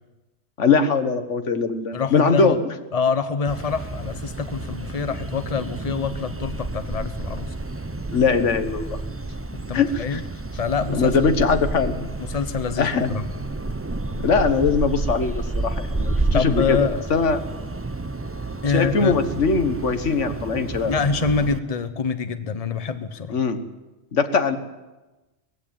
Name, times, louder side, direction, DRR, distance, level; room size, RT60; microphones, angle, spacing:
voice 1, 0.6-2.6 8.1-9.0 9.7-10.2 10.9-12.1 12.8-13.1 14.2-17.4 18.7-20.9 23.3-23.6 24.1-24.6, left 4 dB, 90° left, 9 dB, 1.7 m, -21 dB
voice 2, 1.9-2.6 2.9-7.5 9.7-10.2 10.5-11.3 12.2-13.2 16.3-17.0 18.6-19.1 20.9-23.4, left 5 dB, 35° left, 11 dB, 1.1 m, -25 dB
sound 1, 3.5-21.6, right 2 dB, 15° right, 0.5 m, -30 dB
19.5 x 15.5 x 9.0 m, 1.1 s
omnidirectional pair, 1.2 m